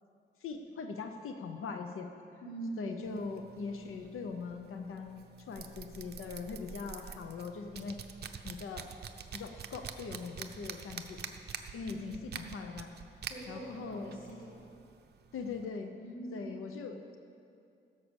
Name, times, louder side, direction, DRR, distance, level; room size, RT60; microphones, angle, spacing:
voice 1, 0.4-2.1 2.8-8.0 8.4-8.9 9.3-11.2 11.7-12.9 13.5-14.1 15.3-15.9 16.3-17.2, left 5 dB, 85° left, 6 dB, 0.8 m, -41 dB
voice 2, 2.4-3.1 11.8-12.5 13.3-14.6 16.0-16.7, right 1 dB, 70° left, -6 dB, 3.5 m, -43 dB
sound 1, 3.0-15.7, right 7 dB, 50° right, 0.7 m, -47 dB
16.5 x 6.7 x 7.0 m, 2.5 s
wide cardioid pair, 170°, 21 cm